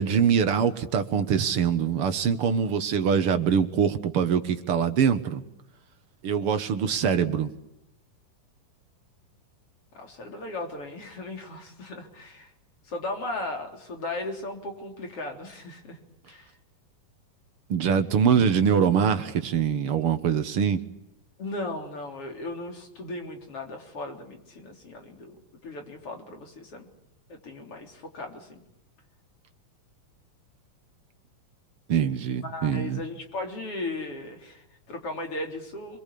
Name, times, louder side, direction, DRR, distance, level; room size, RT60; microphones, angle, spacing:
voice 1, 0.0-5.4 6.2-7.5 17.7-20.8 31.9-33.0, right 7 dB, 55° right, 9 dB, 1.8 m, -23 dB
voice 2, 9.9-12.5 12.9-16.0 16.3-16.5 21.4-26.9 27.3-28.6 32.4-36.0, left 2 dB, 40° left, 3 dB, 4.3 m, -36 dB
28.5 x 22.5 x 8.5 m, 0.82 s
omnidirectional pair, 3.9 m